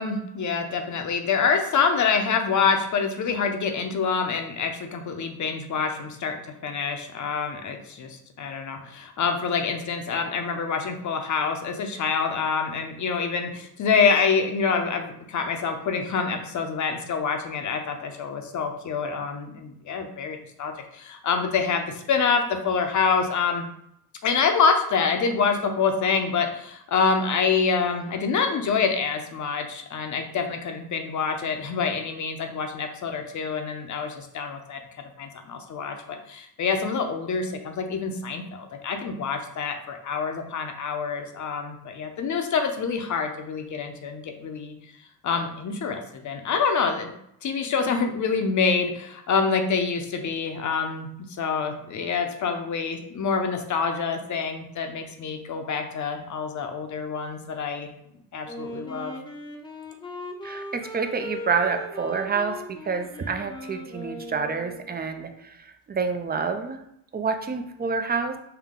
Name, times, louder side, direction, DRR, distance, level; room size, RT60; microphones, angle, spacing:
voice 1, 0.0-6.4 6.6-23.7 24.2-34.8 35.2-44.7 45.2-47.1 47.4-51.1 51.4-57.9 58.3-59.1, left 5 dB, 45° left, 5 dB, 0.7 m, -26 dB
Wind instrument woodwind instrument, 58.5-65.1, left 1 dB, 10° left, 0.7 m, -39 dB
voice 2, 60.4-66.8 67.1-68.4, right 5 dB, 25° right, 7 dB, 0.4 m, -28 dB
5.7 x 2.2 x 3.7 m, 0.75 s
cardioid pair, 110°, 40 cm